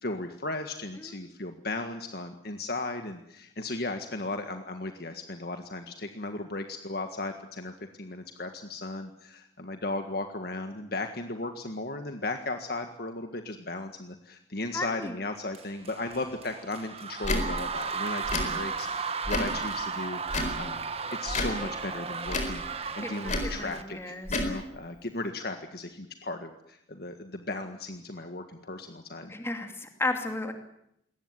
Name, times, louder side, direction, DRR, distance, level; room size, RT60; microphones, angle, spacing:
voice 1, 0.0-29.3, left 2 dB, 55° left, 6 dB, 1.7 m, -36 dB
voice 2, 14.7-15.1 23.0-24.3 29.3-30.5, left 2 dB, 15° left, 5 dB, 2.6 m, -34 dB
sound 1, 15.5-23.8, right 5 dB, 35° right, 1.5 m, -35 dB
Tick / Tick-tock, 17.2-17.4 18.2-18.5 19.2-19.6 20.3-20.6 21.3-21.6 22.3-22.6 23.3-23.5 24.2-24.5, left 2 dB, 40° left, 4.3 m, -29 dB
21.5 x 18.5 x 9.8 m, 0.77 s
head